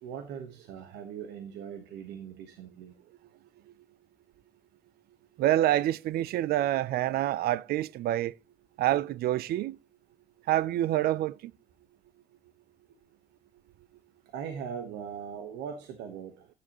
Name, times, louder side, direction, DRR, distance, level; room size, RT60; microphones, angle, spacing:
voice 1, 0.0-3.0 14.2-16.5, right 7 dB, 90° right, 1.2 m, -40 dB
voice 2, 5.4-8.3 8.8-9.8 10.5-11.5, right 13 dB, 65° right, 0.5 m, -27 dB
13.5 x 10.0 x 3.0 m
cardioid pair, 110°, 17 cm